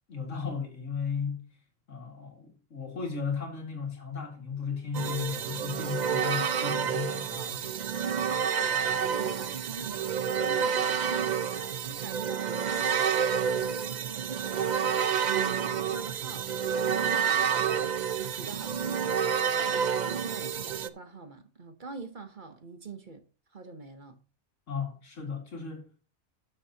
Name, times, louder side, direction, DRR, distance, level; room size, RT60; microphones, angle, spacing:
voice 1, 0.1-1.5 1.9-7.6 24.7-25.8, left 6 dB, 60° left, 2.4 m, -35 dB
sound 1, 4.9-20.9, right 7 dB, 85° right, 0.4 m, -29 dB
voice 2, 8.6-16.5 16.9-19.1 19.6-23.2 23.5-24.2, right 4 dB, 40° right, 1.1 m, -44 dB
12.5 x 7.0 x 2.9 m
omnidirectional pair, 1.4 m